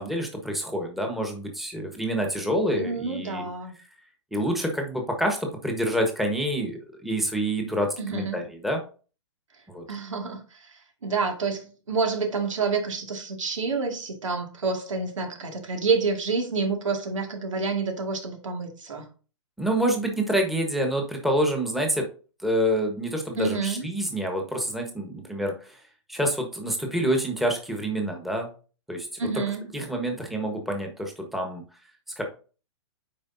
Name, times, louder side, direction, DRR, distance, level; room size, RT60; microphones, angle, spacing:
voice 1, 0.0-3.5 4.3-8.8 9.7-9.8 19.6-22.1 22.4-25.8 26.1-28.5 28.9-29.1 29.7-31.6 32.2-32.3, right 1 dB, ahead, 1.3 m, -27 dB
voice 2, 2.7-3.7 8.0-8.4 9.9-19.1 23.4-23.9 29.2-29.7, right 4 dB, 90° right, 2.2 m, -28 dB
8.8 x 5.1 x 2.7 m
hypercardioid pair, 135°, 16 cm